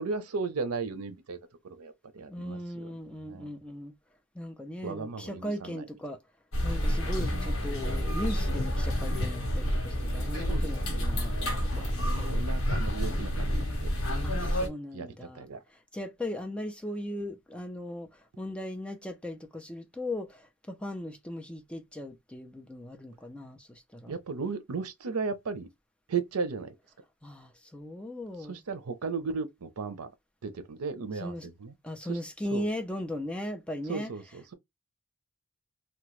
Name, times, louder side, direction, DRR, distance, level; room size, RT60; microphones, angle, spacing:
voice 1, 0.0-1.4 1.7-2.8 3.3-3.5 4.8-5.8 10.3-11.0 11.7-13.3 13.6-13.9 14.9-15.6 24.1-25.7 26.1-26.7 28.4-30.1 30.4-31.7 32.1-32.2 32.5-32.6 33.9-34.5, right 4 dB, 85° right, 0.6 m, -35 dB
voice 2, 2.3-3.9 4.3-6.2 6.6-12.3 14.2-24.1 27.2-28.6 31.2-31.5 31.8-34.1, left 1 dB, 5° left, 0.4 m, -38 dB
sound 1, 6.5-14.7, equal, 65° left, 1.1 m, -29 dB
2.9 x 2.2 x 3.1 m
head